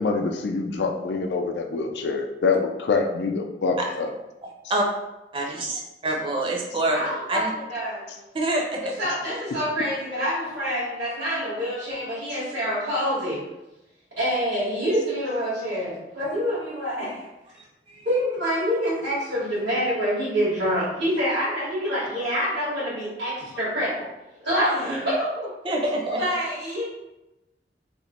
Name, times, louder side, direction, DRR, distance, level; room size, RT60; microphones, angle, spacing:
voice 1, 0.0-4.1, left 4 dB, 80° left, 4 dB, 0.4 m, -25 dB
voice 2, 4.4-4.8 5.3-7.5 8.3-8.8 17.9-18.1 25.6-26.2, right 1 dB, 30° right, 0 dB, 0.5 m, -26 dB
voice 3, 6.9-8.1 8.8-13.4 14.2-17.2 18.0-23.9 24.4-25.5 26.2-26.8, equal, 90° right, -10 dB, 1.4 m, -26 dB
3.0 x 2.1 x 4.1 m, 0.97 s
head